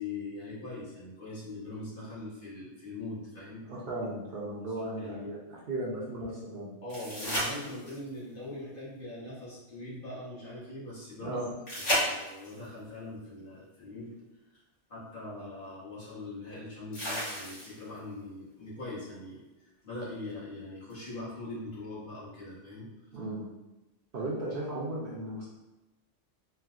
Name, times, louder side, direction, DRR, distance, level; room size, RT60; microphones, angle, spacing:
voice 1, 0.0-3.6 4.7-5.3 6.8-11.4 11.8-14.2 14.5-14.6 14.9-22.9, left 2 dB, 45° left, -8 dB, 1.2 m, -42 dB
voice 2, 3.6-5.4 5.7-6.7 11.2-11.5 23.1-23.5 24.1-25.6, right 1 dB, 55° right, -5 dB, 0.7 m, -36 dB
sound 1, 6.9-8.2 11.7-12.6 14.5-14.6 16.9-18.0 20.9-21.0, equal, 75° left, 1.7 m, -32 dB
4.3 x 2.0 x 2.4 m, 1.0 s
omnidirectional pair, 1.3 m